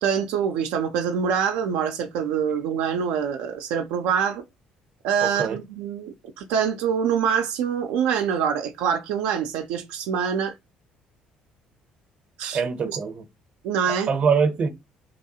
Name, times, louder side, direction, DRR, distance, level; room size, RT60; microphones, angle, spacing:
voice 1, 0.0-4.4 5.0-10.5 12.4-13.0 13.6-14.1, right 7 dB, 85° right, 0.4 m, -25 dB
voice 2, 5.2-5.6 12.5-13.2 14.1-14.7, right 6 dB, 45° right, 0.6 m, -23 dB
2.9 x 2.3 x 2.7 m
supercardioid pair, 90°, 3 cm